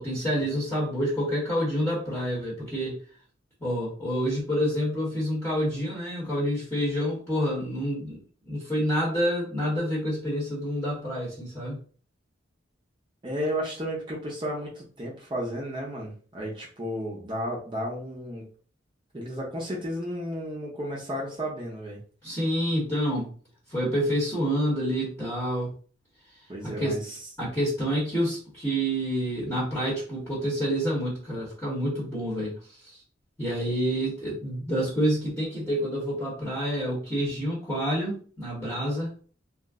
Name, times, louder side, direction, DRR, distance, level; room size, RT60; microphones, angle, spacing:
voice 1, 0.0-3.0 3.6-8.2 8.5-11.8 22.2-23.3 23.7-25.7 26.6-27.0 27.4-33.0 33.4-39.1, equal, 15° left, -7 dB, 1.0 m, -28 dB
voice 2, 13.2-18.4 19.1-22.0 26.5-27.2, equal, 25° right, -4 dB, 0.7 m, -33 dB
2.4 x 2.0 x 3.5 m, 0.42 s
head